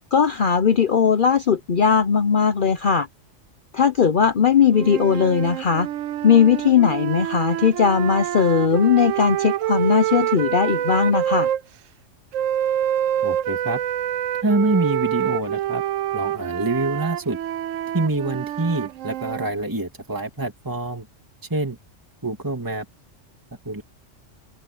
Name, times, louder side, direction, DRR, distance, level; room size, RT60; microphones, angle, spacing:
voice 1, 0.1-3.1 3.7-5.9 6.2-11.5, left 6 dB, 50° left, 0.9 m, -18 dB
sound 1, 4.7-11.6 12.3-19.5, right 11 dB, 90° right, 1.0 m, -26 dB
voice 2, 13.2-13.8 14.4-15.8 16.1-17.4 17.9-21.1 21.5-21.8 22.2-22.9 23.6-23.8, right 2 dB, 15° right, 2.5 m, -25 dB
open air
omnidirectional pair, 1.3 m